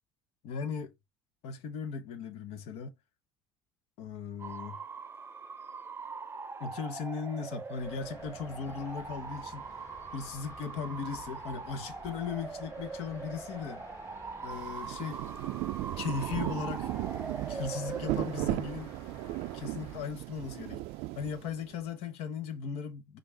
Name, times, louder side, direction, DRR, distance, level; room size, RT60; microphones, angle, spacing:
voice 1, 0.4-1.0 1.4-2.9 4.0-4.8 6.6-9.8 10.1-13.8 14.4-15.2 16.0-16.9 17.5-18.9 19.5-20.8 21.2-23.2, left 6 dB, 65° left, 0.9 m, -37 dB
Bark / Motor vehicle (road) / Siren, 4.4-20.7, right 5 dB, 20° right, 0.7 m, -43 dB
sound 1, 7.8-20.0, left 2 dB, 30° left, 2.1 m, -52 dB
Rain, 14.5-21.7, right 18 dB, 65° right, 0.3 m, -36 dB
5.0 x 2.5 x 3.3 m
hypercardioid pair, 65°, 11 cm